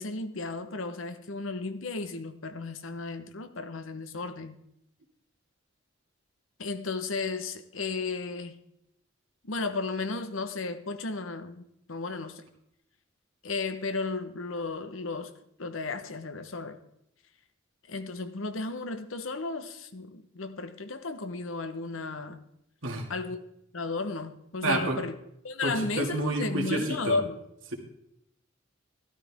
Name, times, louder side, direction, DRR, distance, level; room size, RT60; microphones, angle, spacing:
voice 1, 0.0-4.5 6.6-8.6 9.4-12.4 13.4-15.3 15.6-16.8 17.9-22.4 23.1-23.4 23.7-25.1 25.4-27.4, left 3 dB, 85° left, 10 dB, 1.1 m, -34 dB
voice 2, 24.6-25.0 25.6-27.2, right 2 dB, 80° right, 1 dB, 2.3 m, -29 dB
14.0 x 12.5 x 3.6 m, 0.78 s
head